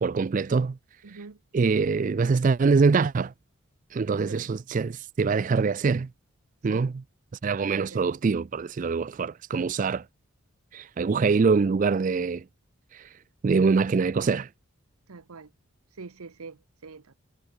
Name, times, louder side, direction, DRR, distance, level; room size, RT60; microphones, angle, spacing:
voice 1, 0.0-0.8 1.5-3.3 3.9-6.1 6.6-6.9 7.4-10.0 10.7-12.4 12.9-13.0 13.4-14.5, right 4 dB, 35° right, 0.3 m, -24 dB
voice 2, 1.0-1.4 4.3-4.5 6.7-6.9 7.7-8.0 15.1-15.5 16.0-17.1, right 4 dB, 90° right, 0.9 m, -44 dB
head